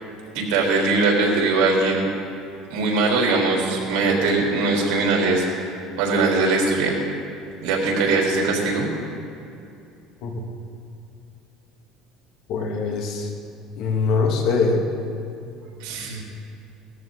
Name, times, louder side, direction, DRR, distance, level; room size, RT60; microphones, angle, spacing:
voice 1, 0.3-2.1 2.7-5.7 6.0-7.0 7.6-8.9 15.8-16.2, right 3 dB, 75° right, -2 dB, 3.8 m, -21 dB
voice 2, 12.5-13.3 13.8-14.8, left 4 dB, 60° left, 1 dB, 2.2 m, -22 dB
18.5 x 14.0 x 4.0 m, 2.6 s
cardioid pair, 140°, 0 cm